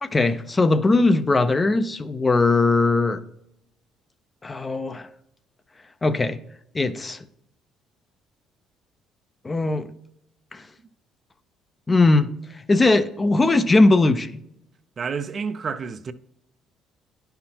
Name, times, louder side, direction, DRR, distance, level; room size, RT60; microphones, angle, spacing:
voice 1, 0.0-3.2 4.4-5.1 6.0-6.4 6.7-7.2 9.4-9.9 10.5-10.6 11.9-12.3 12.7-14.4, left 3 dB, 25° left, 0.5 m, -19 dB
voice 2, 15.0-16.1, right 5 dB, 45° right, 0.5 m, -29 dB
9.6 x 5.7 x 2.9 m
supercardioid pair, 80°, 0 cm